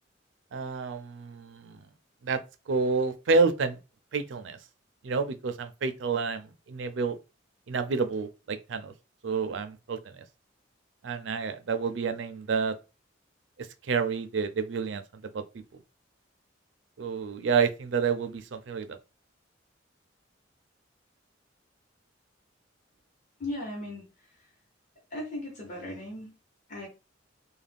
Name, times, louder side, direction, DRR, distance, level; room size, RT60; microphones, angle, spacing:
voice 1, 0.5-1.9 2.2-2.4 2.7-3.8 4.1-4.6 5.0-7.2 7.7-8.9 9.2-10.1 11.0-12.7 13.9-15.0 15.3-15.4 17.0-18.9, right 5 dB, 65° right, 0.4 m, -29 dB
voice 2, 23.4-24.0 25.1-26.3 26.7-26.9, left 1 dB, 40° left, 1.0 m, -37 dB
2.4 x 2.1 x 3.4 m
head